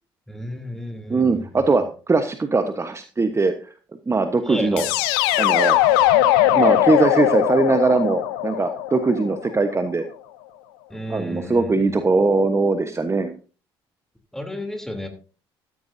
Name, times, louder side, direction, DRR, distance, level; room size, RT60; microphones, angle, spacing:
voice 1, 0.3-1.7 4.5-4.9 10.9-12.0 14.3-15.1, left 1 dB, 5° left, 4 dB, 3.2 m, -32 dB
voice 2, 1.1-3.7 4.1-4.8 5.4-5.8 6.5-10.0 11.1-13.3, right 3 dB, 20° right, 8 dB, 1.2 m, -20 dB
sound 1, 4.8-9.7, left 13 dB, 70° left, 0.9 m, -20 dB
14.5 x 13.5 x 2.7 m, 0.37 s
hypercardioid pair, 55°, 13 cm